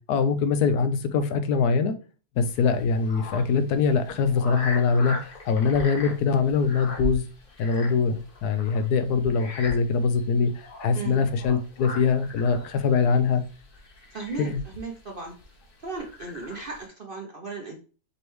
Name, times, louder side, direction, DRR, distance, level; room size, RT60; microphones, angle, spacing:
voice 1, 0.1-2.0 2.4-7.2 7.6-13.4 14.4-14.6, left 5 dB, 75° left, 9 dB, 1.1 m, -23 dB
sound 1, 2.4-16.8, left 2 dB, 40° left, 0.9 m, -40 dB
voice 2, 10.9-11.3 14.1-15.3 15.8-17.8, right 4 dB, 45° right, 1 dB, 0.7 m, -36 dB
5.2 x 3.3 x 3.1 m, 0.35 s
omnidirectional pair, 1.7 m